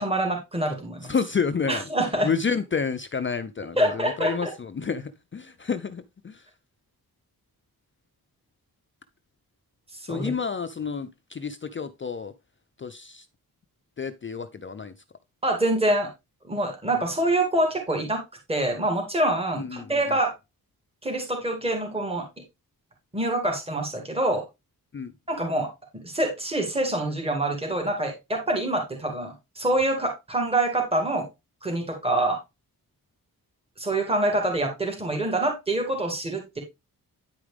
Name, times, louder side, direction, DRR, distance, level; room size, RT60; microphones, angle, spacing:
voice 1, 0.0-1.1 1.7-2.3 3.8-4.5 10.0-10.3 15.4-16.1 16.4-18.2 18.5-20.3 21.0-22.3 23.1-24.4 25.3-31.3 31.6-32.4 33.8-36.6, right 1 dB, 15° right, 2.4 m, -26 dB
voice 2, 1.1-1.8 2.2-6.4 10.1-12.3 12.8-13.2 14.0-14.9 19.6-19.9 24.9-25.1, left 5 dB, 35° left, 0.5 m, -29 dB
9.6 x 4.9 x 3.3 m
wide cardioid pair, 130°, 37 cm